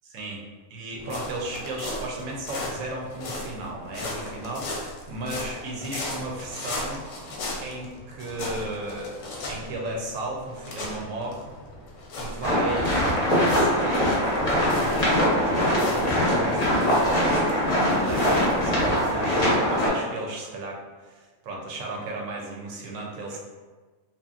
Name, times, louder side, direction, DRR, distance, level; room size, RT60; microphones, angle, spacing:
voice 1, 0.1-0.4 0.7-7.0 7.6-11.4 12.2-14.1 14.4-14.9 15.5-17.2 17.9-23.4, right 2 dB, 65° right, -1 dB, 0.9 m, -35 dB
sound 1, 1.0-19.1, left 1 dB, 65° left, 0.8 m, -36 dB
sound 2, 12.4-19.9, equal, 40° left, 0.6 m, -22 dB
2.8 x 2.4 x 2.4 m, 1.3 s
omnidirectional pair, 1.6 m